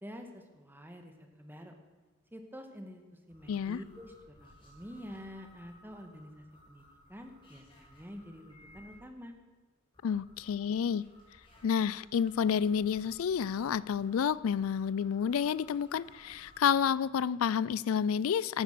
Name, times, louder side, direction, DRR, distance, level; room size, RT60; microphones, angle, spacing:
voice 1, 0.0-1.7 2.3-3.0 3.3-4.1 4.4-6.8 7.1-9.3, equal, 10° right, 5 dB, 1.6 m, -48 dB
sound 1, 3.3-9.0 9.9-16.8, left 1 dB, 25° left, 4.4 m, -60 dB
voice 2, 3.5-3.8 10.0-11.0 11.6-18.6, left 7 dB, 80° left, 20 dB, 0.4 m, -30 dB
14.5 x 11.5 x 6.8 m, 1.3 s
head